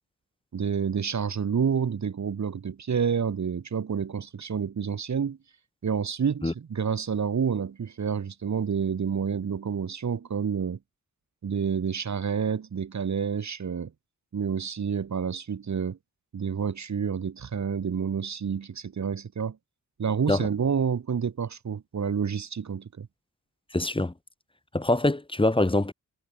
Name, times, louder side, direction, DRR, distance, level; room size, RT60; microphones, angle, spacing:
voice 1, 0.5-5.4 5.8-10.8 11.4-13.9 14.3-16.0 16.3-19.6 20.0-23.1, right 7 dB, 50° right, 1.2 m, -29 dB
voice 2, 23.7-24.1 24.7-25.9, left 2 dB, 15° left, 1.5 m, -24 dB
wide cardioid pair, 110°, 35 cm